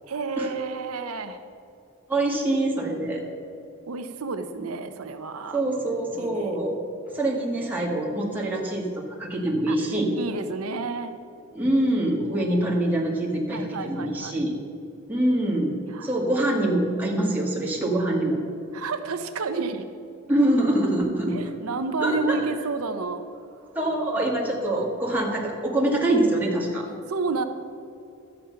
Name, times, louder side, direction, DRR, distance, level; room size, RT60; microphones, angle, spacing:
voice 1, 0.1-1.4 3.9-5.6 6.2-6.5 9.7-9.8 10.2-11.1 12.3-12.6 13.5-14.4 15.9-16.1 18.7-19.9 21.3-23.3 24.7-24.9 27.1-27.4, right 4 dB, 80° right, 8 dB, 0.6 m, -30 dB
voice 2, 2.1-3.2 5.5-6.8 7.1-10.1 11.5-14.5 15.1-15.8 16.0-18.4 20.3-21.4 22.0-22.5 23.7-26.9, right 1 dB, 10° right, -3 dB, 1.8 m, -24 dB
12.5 x 9.0 x 5.7 m, 2.7 s
head